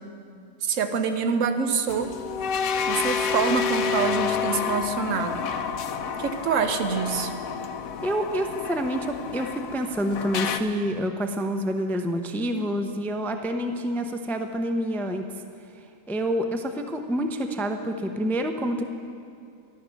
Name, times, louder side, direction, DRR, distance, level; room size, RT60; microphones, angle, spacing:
voice 1, 0.6-2.2 2.9-5.5 6.2-7.3, right 5 dB, 70° right, 8 dB, 1.2 m, -26 dB
sound 1, 1.9-10.6, left 6 dB, 80° left, 1.1 m, -29 dB
voice 2, 8.0-15.3 16.1-18.8, equal, 5° left, 6 dB, 0.3 m, -27 dB
13.5 x 12.0 x 6.3 m, 2.5 s
omnidirectional pair, 1.5 m